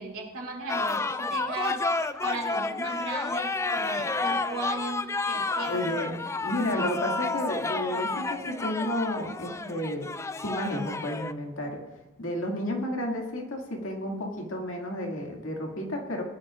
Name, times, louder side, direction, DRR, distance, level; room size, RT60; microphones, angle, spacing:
voice 1, 0.0-5.9 9.5-9.7, right 2 dB, 80° right, 0 dB, 2.7 m, -37 dB
sound 1, 0.7-11.3, left 3 dB, 15° left, 0.3 m, -30 dB
voice 2, 5.7-10.1 10.4-11.8 12.2-16.2, left 1 dB, 65° left, 1 dB, 2.3 m, -32 dB
20.5 x 11.5 x 2.5 m, 1.1 s
head